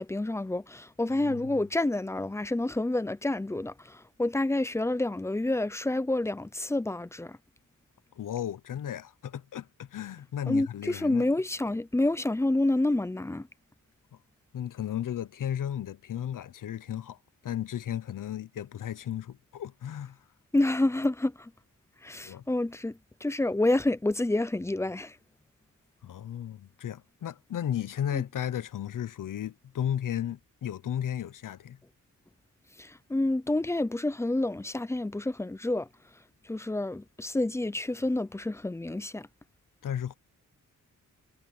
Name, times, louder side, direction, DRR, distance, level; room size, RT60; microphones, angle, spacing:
voice 1, 0.0-7.4 10.5-13.5 20.5-21.5 22.0-25.2 28.1-28.2 32.8-35.9 36.4-39.3, left 2 dB, 10° left, 0.5 m, -28 dB
voice 2, 1.1-1.4 8.2-11.3 14.5-17.2 17.4-20.2 22.2-22.4 26.0-31.8 39.8-40.2, left 10 dB, 70° left, 0.9 m, -34 dB
wide cardioid pair, 135°, 33 cm